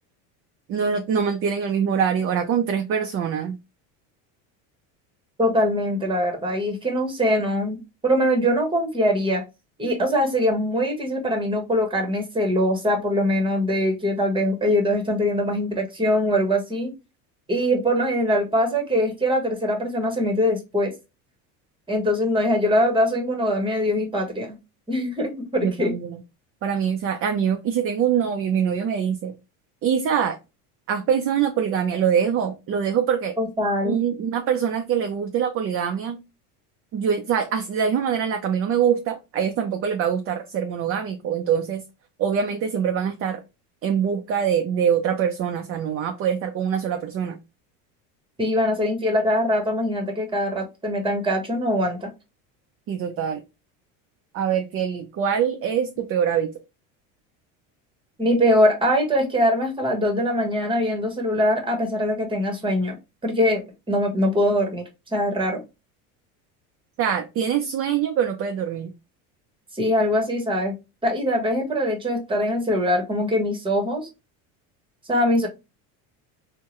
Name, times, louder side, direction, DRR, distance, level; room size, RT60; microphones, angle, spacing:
voice 1, 0.7-3.6 25.6-26.2 26.6-29.3 29.8-30.4 30.9-33.3 33.8-36.2 36.9-41.8 42.2-43.4 43.8-47.4 52.9-53.4 54.3-56.5 67.0-68.9, right 8 dB, 35° right, 0.5 m, -24 dB
voice 2, 5.4-9.4 9.8-16.9 17.5-20.9 21.9-24.6 24.9-25.9 33.4-34.0 48.4-52.1 58.2-62.9 63.2-63.6 63.9-65.6 69.7-70.7 71.0-74.1 75.1-75.5, equal, 15° right, 1.1 m, -22 dB
3.7 x 2.2 x 3.0 m
supercardioid pair, 115°, 39 cm